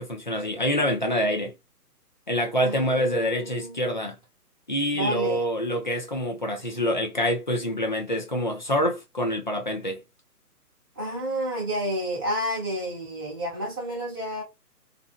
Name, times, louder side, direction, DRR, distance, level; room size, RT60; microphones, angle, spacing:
voice 1, 0.0-1.5 2.3-4.2 4.7-10.0, equal, 30° left, 0.4 m, -26 dB
voice 2, 2.6-3.8 4.9-5.4 11.0-14.4, equal, 15° right, 0.7 m, -30 dB
2.5 x 2.1 x 2.4 m
figure-of-eight pair, 150°, 47 cm